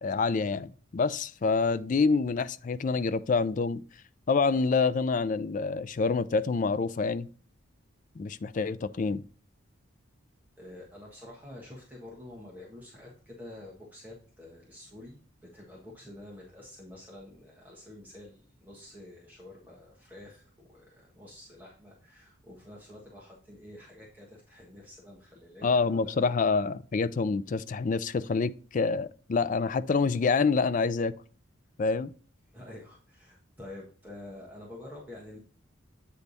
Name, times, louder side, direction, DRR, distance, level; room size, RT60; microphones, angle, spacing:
voice 1, 0.0-3.8 4.3-7.3 8.2-9.2 25.6-31.1 31.8-32.1, left 4 dB, 40° left, 0.3 m, -27 dB
voice 2, 10.6-26.3 32.5-35.4, left 1 dB, 10° right, 1.3 m, -48 dB
8.4 x 3.4 x 4.0 m
head